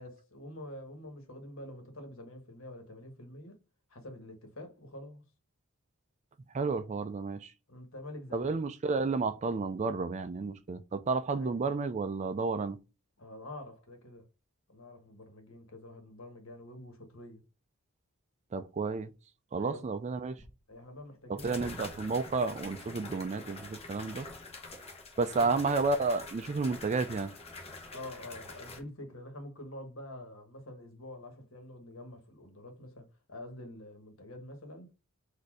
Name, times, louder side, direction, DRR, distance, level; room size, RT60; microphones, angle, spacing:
voice 1, 0.0-3.6 3.9-5.2 7.7-8.6 11.3-11.6 13.2-14.3 14.7-17.4 19.5-19.9 20.7-21.6 25.4-25.5 27.9-34.9, left 1 dB, 65° left, 1.4 m, -47 dB
voice 2, 6.5-7.5 8.3-12.8 18.5-19.1 19.5-20.4 21.3-24.3 25.2-27.3, right 4 dB, 30° right, 0.3 m, -31 dB
sound 1, 20.4-20.5 21.4-28.8, left 3 dB, 30° left, 1.1 m, -46 dB
4.3 x 2.7 x 4.7 m
head